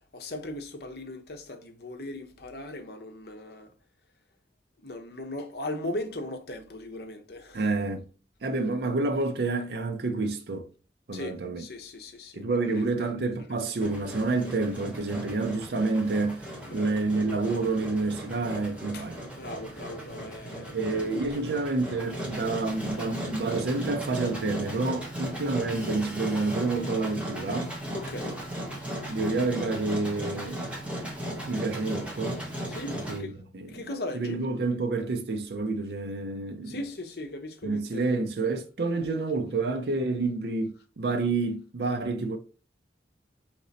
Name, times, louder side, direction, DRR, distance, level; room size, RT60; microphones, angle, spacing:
voice 1, 0.1-3.7 4.8-7.7 11.1-13.1 13.6-13.7 16.7-16.9 18.9-19.1 19.3-21.6 27.9-28.4 32.7-33.4 33.7-34.4 36.7-38.1, left 1 dB, 60° left, 0.8 m, -38 dB
voice 2, 7.5-8.0 8.4-10.7 11.1-11.6 12.4-19.2 20.7-27.7 29.1-30.6 31.4-32.4 33.1-33.7 34.1-36.8 37.6-42.4, right 3 dB, 60° right, 0.5 m, -29 dB
Engine, 13.8-33.2, equal, 5° right, 1.1 m, -37 dB
3.9 x 3.0 x 4.0 m
head